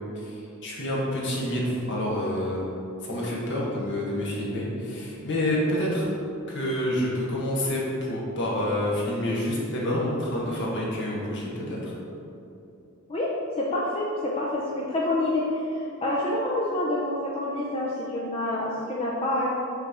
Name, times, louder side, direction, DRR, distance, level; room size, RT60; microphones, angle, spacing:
voice 1, 0.1-2.6 3.0-6.0 6.5-11.9, left 1 dB, 55° left, -4 dB, 1.4 m, -28 dB
voice 2, 13.6-19.5, left 1 dB, 25° left, -5 dB, 0.6 m, -27 dB
5.9 x 3.4 x 5.8 m, 2.7 s
head